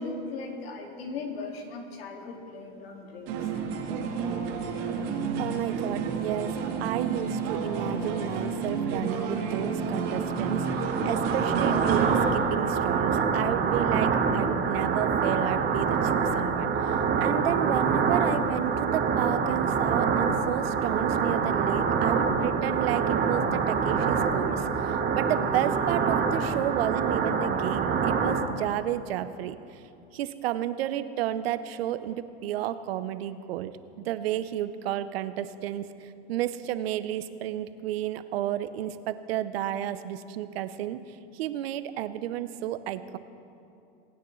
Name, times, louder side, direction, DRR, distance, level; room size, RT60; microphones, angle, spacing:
voice 1, 0.0-3.5, left 3 dB, 80° left, 2 dB, 2.1 m, -38 dB
sound 1, 3.3-12.3, right 5 dB, 65° right, 2.2 m, -30 dB
voice 2, 5.4-29.6 30.1-33.7 34.0-41.0 41.3-43.2, right 12 dB, 80° right, 13 dB, 0.7 m, -31 dB
sound 2, 9.8-28.4, right 6 dB, 35° right, 1.2 m, -26 dB
22.0 x 9.5 x 3.1 m, 2.6 s
hypercardioid pair, 100°, 30 cm